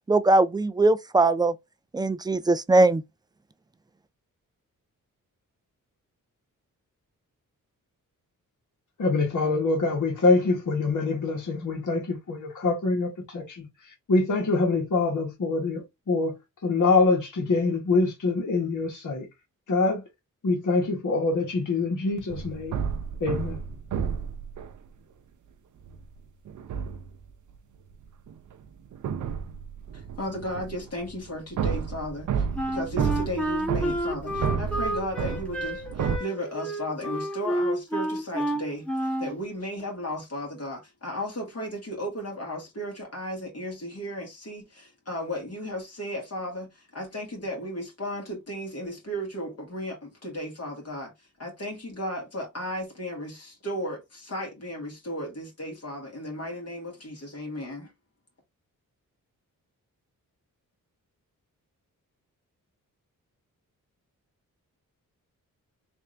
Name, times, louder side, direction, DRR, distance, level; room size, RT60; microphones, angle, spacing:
voice 1, 0.1-1.5 1.9-3.0, right 2 dB, 15° right, 0.3 m, -20 dB
voice 2, 9.0-13.7 14.1-16.4 16.6-19.2 19.7-20.0 20.4-22.8 23.2-23.6, left 3 dB, 60° left, 1.5 m, -25 dB
sound 1, 22.3-24.7 25.8-26.0 26.5-27.2 28.0-36.2, right 7 dB, 60° right, 0.6 m, -31 dB
voice 3, 29.9-51.1 51.4-57.9, equal, 45° left, 1.8 m, -35 dB
Wind instrument woodwind instrument, 32.6-39.4, right 1 dB, 5° left, 1.1 m, -30 dB
3.4 x 2.6 x 3.2 m
cardioid pair, 70°, 34 cm